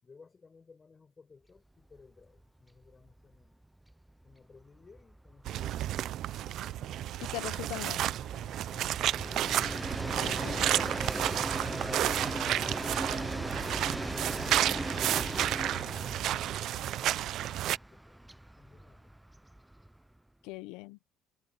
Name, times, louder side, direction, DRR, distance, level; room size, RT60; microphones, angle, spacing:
voice 1, 0.0-3.7 4.2-6.3 15.7-19.1, left 4 dB, 35° left, 5.8 m, -60 dB
Train, 1.9-2.1 2.4-2.5 2.8-20.2, right 1 dB, 5° right, 1.1 m, -39 dB
sound 1, 5.5-17.8, right 13 dB, 70° right, 0.7 m, -32 dB
voice 2, 7.2-8.0 10.2-10.9 20.4-21.0, left 20 dB, 80° left, 1.1 m, -41 dB
supercardioid pair, 70°, 0 cm